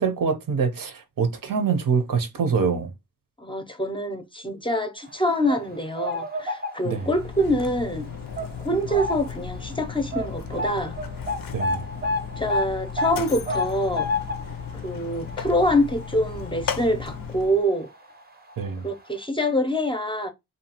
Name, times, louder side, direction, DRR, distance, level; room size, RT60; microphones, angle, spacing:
voice 1, 0.0-2.9 6.8-7.1 11.5-11.8 18.6-18.8, right 5 dB, 80° right, 0.7 m, -25 dB
voice 2, 3.4-8.0 8.6-10.9 12.4-14.1 14.8-17.9 18.8-20.3, equal, 15° left, 0.5 m, -25 dB
sound 1, 5.2-7.2 7.6-7.8 8.4-9.5 9.7-9.8 10.1-17.2 17.5-17.6 18.5-18.6 18.9-19.0, left 1 dB, 30° right, 0.6 m, -30 dB
Mechanisms, 6.9-17.6, left 7 dB, 85° left, 0.5 m, -35 dB
2.7 x 2.3 x 2.8 m
wide cardioid pair, 110°, 33 cm